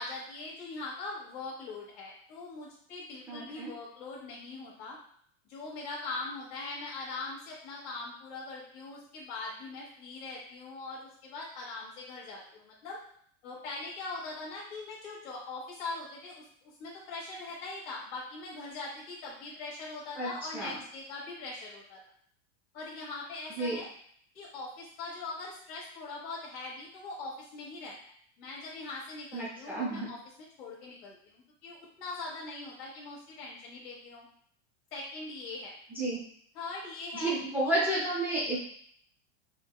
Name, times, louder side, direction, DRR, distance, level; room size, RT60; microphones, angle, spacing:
voice 1, 0.0-5.0 5.4-13.0 13.4-22.0 22.7-23.9 24.3-34.3 34.9-35.8 36.5-37.3 37.7-37.8, left 3 dB, 55° left, -6 dB, 1.1 m, -41 dB
voice 2, 3.3-3.7 20.2-20.8 23.5-23.8 29.3-30.1 35.9-36.2 37.2-38.6, right 1 dB, 5° right, -7 dB, 0.4 m, -31 dB
4.5 x 2.1 x 2.2 m, 0.63 s
supercardioid pair, 150°, 34 cm